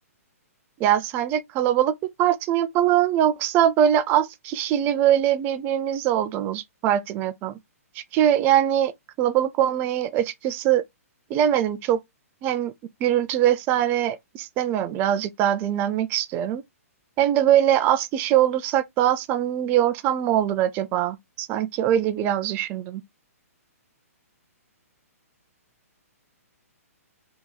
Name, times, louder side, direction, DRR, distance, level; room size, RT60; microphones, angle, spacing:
voice 1, 0.8-7.6 8.1-8.9 9.2-10.8 11.3-12.0 12.4-12.7 13.0-16.6 17.2-23.0, right 11 dB, 25° right, 0.5 m, -22 dB
3.5 x 3.0 x 3.9 m
hypercardioid pair, 145°, 8 cm